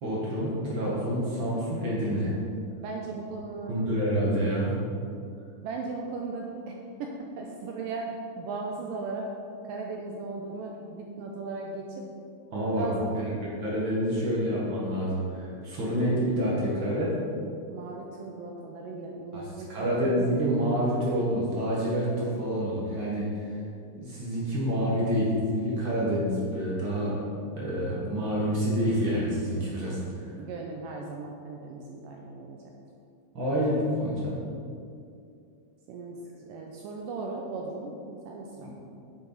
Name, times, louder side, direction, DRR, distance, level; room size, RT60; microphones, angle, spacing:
voice 1, 0.0-2.3 3.7-4.7 12.5-12.9 13.1-13.2 13.6-17.1 19.3-23.6 23.9-27.2 27.5-30.3 33.3-34.4 38.6-38.7, equal, 50° right, -6 dB, 1.5 m, -28 dB
voice 2, 2.7-3.8 5.6-9.3 9.7-12.1 12.7-13.1 17.7-19.7 30.4-32.6 35.9-38.7, right 3 dB, 80° right, 0 dB, 2.1 m, -37 dB
9.4 x 7.0 x 4.0 m, 2.4 s
omnidirectional pair, 4.4 m